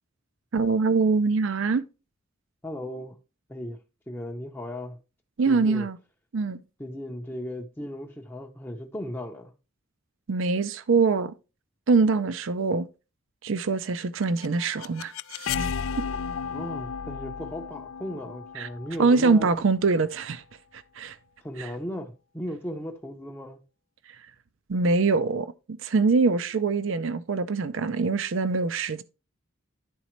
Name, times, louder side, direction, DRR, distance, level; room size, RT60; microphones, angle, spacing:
voice 1, 0.5-1.8 5.4-6.0 6.3-6.6 10.3-11.3 11.9-12.9 13.4-15.7 16.0-16.1 18.6-18.7 19.0-20.4 21.0-21.2 21.6-21.7 24.7-29.0, right 4 dB, 65° right, 0.5 m, -24 dB
voice 2, 2.6-3.2 3.5-3.8 4.1-5.0 5.5-5.9 6.8-9.5 16.5-19.5 21.4-23.6, equal, 10° left, 0.6 m, -36 dB
sound 1, 14.0-19.9, left 6 dB, 70° left, 0.4 m, -34 dB
11.0 x 4.1 x 3.0 m
head